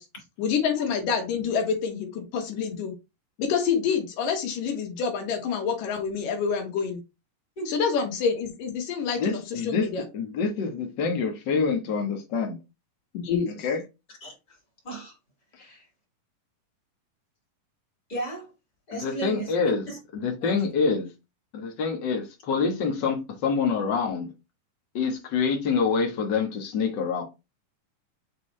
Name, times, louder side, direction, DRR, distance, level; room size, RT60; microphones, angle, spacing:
voice 1, 0.4-2.9 3.4-7.0 7.7-10.0 13.2-13.6, left 6 dB, 80° left, 3.0 m, -27 dB
voice 2, 9.2-9.9 10.1-12.6 13.6-13.8 18.9-19.8 20.1-21.1 21.5-24.3 24.9-27.2, left 5 dB, 50° left, 1.4 m, -26 dB
voice 3, 14.2-14.6 14.8-15.2 15.6-15.9 18.1-18.5 18.9-20.0 20.4-20.6, right 2 dB, 30° left, 3.0 m, -35 dB
7.5 x 4.0 x 3.3 m
omnidirectional pair, 3.8 m